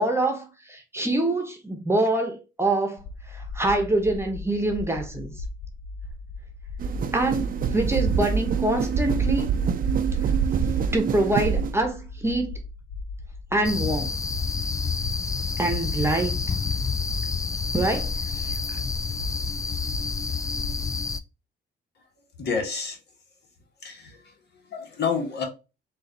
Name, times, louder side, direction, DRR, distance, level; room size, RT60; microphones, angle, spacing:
voice 1, 0.0-5.3 7.1-9.5 10.9-12.5 13.5-14.1 15.6-16.4 17.7-18.8, right 2 dB, 15° right, 1.0 m, -25 dB
sound 1, 3.0-20.8, left 3 dB, 80° left, 0.6 m, -38 dB
Old Train Speeding Up, 6.8-11.8, right 6 dB, 45° right, 0.5 m, -25 dB
sound 2, 13.6-21.2, left 5 dB, 15° left, 0.3 m, -28 dB
voice 2, 22.4-23.0 23.8-24.3 24.6-25.4, left 5 dB, 60° left, 1.4 m, -29 dB
3.9 x 2.6 x 3.9 m
cardioid pair, 90°, 20 cm